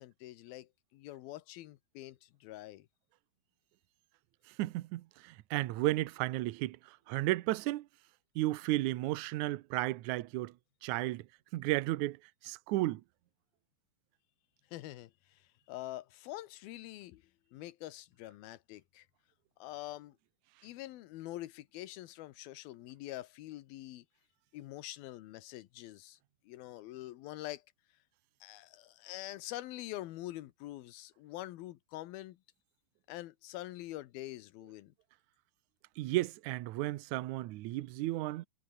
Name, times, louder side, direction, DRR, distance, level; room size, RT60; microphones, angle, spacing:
voice 1, 0.0-2.9 14.7-17.2 17.5-19.1 19.6-20.2 20.6-24.1 24.5-26.2 26.4-27.6 28.4-32.4 33.1-34.9, left 15 dB, 80° left, 2.9 m, -45 dB
voice 2, 4.6-7.9 8.3-10.5 10.8-11.3 11.5-12.2 12.4-13.0 36.0-38.5, right 17 dB, 75° right, 1.8 m, -33 dB
omnidirectional pair, 4.3 m